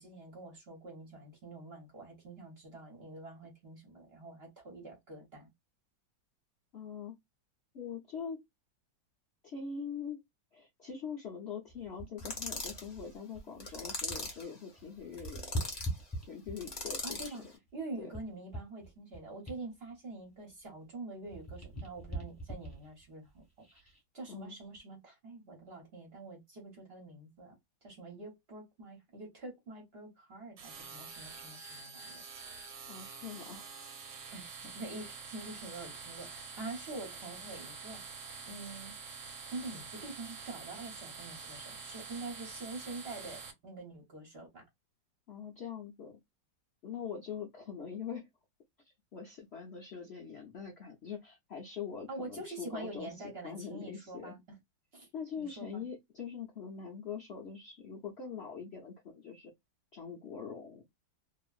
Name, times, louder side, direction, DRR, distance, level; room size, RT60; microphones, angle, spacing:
voice 1, 0.0-5.5 17.0-17.4 17.7-23.4 23.7-32.2 34.3-34.5 34.7-38.1 38.4-39.0 39.5-44.6 52.1-54.6 54.9-55.1 55.4-55.8, right 2 dB, 40° right, 1.0 m, -46 dB
voice 2, 6.7-7.1 7.7-8.4 9.4-10.2 10.5-15.7 16.3-17.4 18.0-18.1 24.3-24.6 32.9-34.2 45.3-46.1 46.8-48.3 49.1-54.4 55.1-59.5 59.9-60.8, left 6 dB, 90° left, 0.5 m, -43 dB
sound 1, 11.7-14.4 14.7-16.8 17.4-20.9 21.2-24.0 24.6-24.8, right 1 dB, 10° left, 1.2 m, -43 dB
sound 2, 12.2-12.9 13.6-14.5 15.1-15.9 16.6-17.4, left 2 dB, 35° left, 0.7 m, -40 dB
sound 3, 30.6-43.5, right 5 dB, 80° right, 1.5 m, -47 dB
2.9 x 2.5 x 2.3 m
omnidirectional pair, 2.0 m